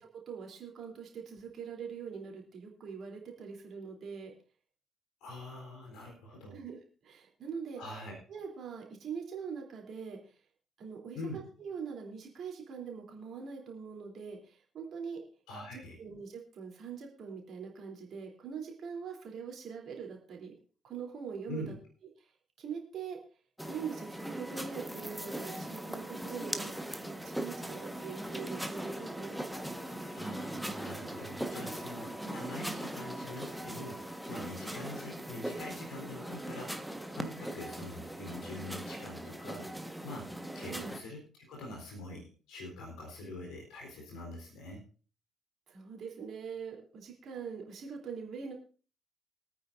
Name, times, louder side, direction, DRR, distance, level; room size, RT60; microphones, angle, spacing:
voice 1, 0.3-4.3 6.5-7.8 8.3-10.4 10.8-15.2 15.7-20.5 20.8-21.7 22.2-22.3 22.6-23.2 23.7-29.4 40.6-40.9 45.7-48.5, right 6 dB, 50° right, 0 dB, 3.4 m, -43 dB
voice 2, 5.2-6.6 7.8-8.2 11.1-11.4 15.5-16.0 21.5-21.7 30.0-39.7 40.0-44.8, left 1 dB, 65° left, -1 dB, 4.0 m, -44 dB
sound 1, 23.6-41.0, right 1 dB, ahead, 1.4 m, -40 dB
23.5 x 9.1 x 2.7 m, 0.38 s
figure-of-eight pair, 45°, 0 cm